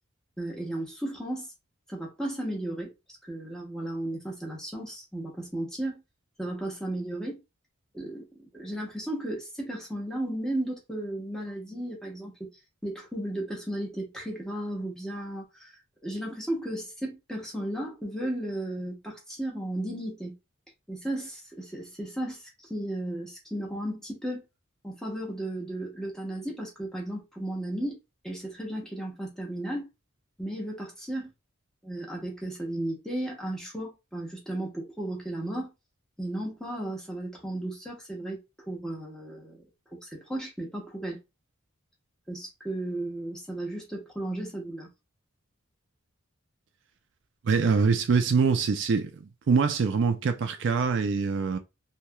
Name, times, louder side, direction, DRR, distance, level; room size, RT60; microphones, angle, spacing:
voice 1, 0.4-1.5 1.9-2.9 3.3-6.0 6.4-7.4 7.9-8.3 8.5-12.5 12.8-15.7 16.0-20.4 20.9-24.4 24.8-28.0 28.2-29.9 30.4-31.3 31.8-35.7 36.2-39.6 39.9-41.2 42.3-44.9, right 1 dB, 5° left, 0.8 m, -34 dB
voice 2, 47.4-49.1 49.5-51.6, right 5 dB, 55° right, 0.3 m, -24 dB
3.0 x 2.8 x 2.2 m
head